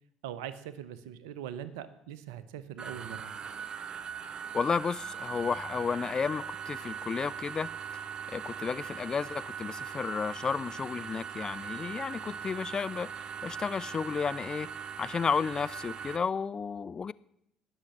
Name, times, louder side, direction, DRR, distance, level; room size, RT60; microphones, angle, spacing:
voice 1, 0.2-3.3, right 10 dB, 75° right, 14 dB, 0.9 m, -41 dB
sound 1, 2.8-16.2, right 7 dB, 40° right, 0.8 m, -40 dB
voice 2, 4.5-8.0 8.3-13.1 13.4-14.7 15.0-17.1, left 6 dB, 35° left, 17 dB, 0.4 m, -32 dB
19.0 x 6.6 x 7.2 m, 0.77 s
hypercardioid pair, 55°, 2 cm